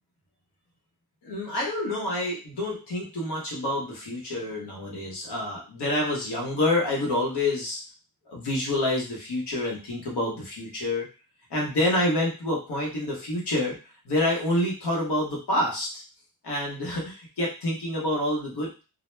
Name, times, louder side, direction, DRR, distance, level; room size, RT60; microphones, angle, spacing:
voice 1, 1.2-7.8 8.3-11.1 11.5-13.8 14.0-15.9 16.4-18.8, left 1 dB, 90° left, -3 dB, 0.9 m, -27 dB
2.2 x 2.1 x 3.1 m, 0.33 s
wide cardioid pair, 130°, 39 cm